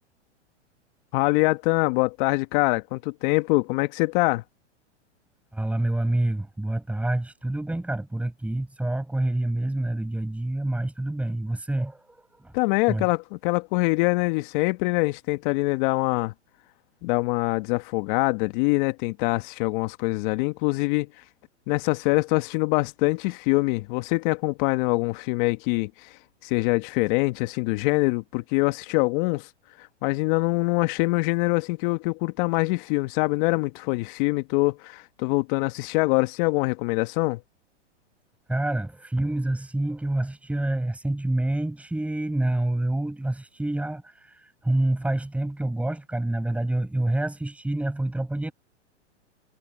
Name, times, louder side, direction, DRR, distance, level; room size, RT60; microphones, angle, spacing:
voice 1, 1.1-4.4 12.5-16.3 17.0-21.1 21.7-26.1 26.4-29.5 29.8-37.4, left 25 dB, 45° left, 1.5 m, -24 dB
voice 2, 5.5-12.5 12.9-13.1 38.5-48.5, right 1 dB, 5° right, 5.6 m, -27 dB
hypercardioid pair, 120°, 35 cm